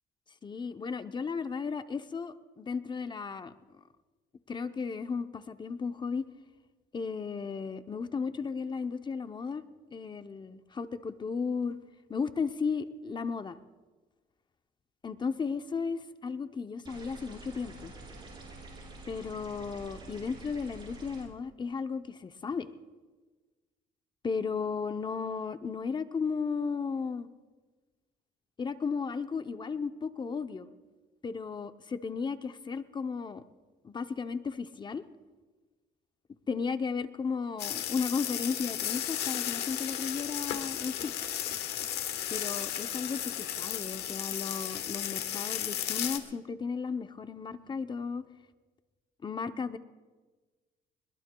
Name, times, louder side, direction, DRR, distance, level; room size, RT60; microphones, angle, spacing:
voice 1, 0.4-3.5 4.5-6.3 6.9-9.6 9.9-11.8 12.1-13.6 15.0-17.9 19.1-22.7 24.2-27.3 28.6-30.7 31.2-33.4 33.8-35.0 36.5-41.1 42.3-48.2 49.2-49.8, left 5 dB, 25° left, 10 dB, 0.6 m, -34 dB
sound 1, 16.8-21.2, right 2 dB, 30° right, 5.7 m, -47 dB
sound 2, 37.6-46.2, left 11 dB, 75° left, 1.2 m, -34 dB
21.5 x 21.0 x 2.3 m, 1.3 s
cardioid pair, 110°, 17 cm